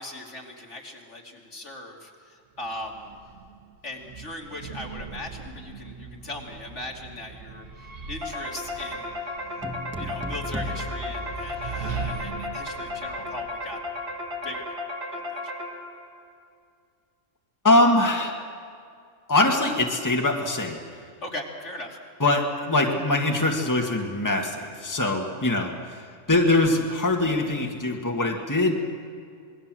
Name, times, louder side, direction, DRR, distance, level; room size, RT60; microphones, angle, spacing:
voice 1, 0.0-3.1 3.8-9.1 10.0-13.8 14.4-14.7 15.1-15.4 21.2-22.0, left 1 dB, 65° left, -1 dB, 3.3 m, -39 dB
sound 1, 2.6-14.7, right 5 dB, 80° right, 2.2 m, -41 dB
sound 2, 8.2-16.1, left 2 dB, 55° right, 3.5 m, -34 dB
sound 3, 9.6-12.2, equal, 10° right, 1.7 m, -35 dB
voice 2, 17.6-18.4 19.3-20.8 22.2-28.7, left 2 dB, 15° left, 1 dB, 1.9 m, -23 dB
27.5 x 21.0 x 7.7 m, 2.2 s
omnidirectional pair, 1.3 m